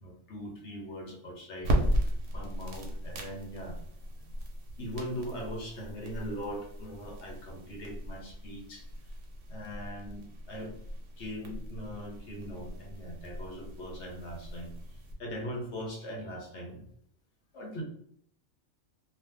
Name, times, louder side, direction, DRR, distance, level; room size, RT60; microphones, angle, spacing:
voice 1, 0.0-3.8 4.8-8.8 9.5-10.7 11.2-14.7 15.2-16.8 17.5-17.8, equal, 60° left, 0 dB, 1.0 m, -40 dB
sound 1, 1.6-15.1, right 1 dB, 60° right, 0.9 m, -36 dB
2.5 x 2.3 x 3.3 m, 0.67 s
omnidirectional pair, 1.4 m